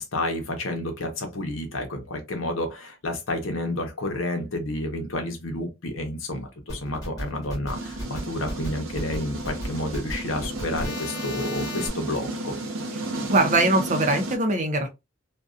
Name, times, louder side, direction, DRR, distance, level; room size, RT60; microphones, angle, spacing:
voice 1, 0.0-12.5, left 1 dB, 80° left, 0.8 m, -30 dB
sound 1, 6.7-11.9, left 1 dB, 20° left, 1.2 m, -35 dB
sound 2, 7.7-14.4, right 2 dB, 85° right, 0.7 m, -33 dB
voice 2, 13.3-14.9, right 2 dB, 40° right, 0.6 m, -21 dB
2.5 x 2.2 x 2.4 m
head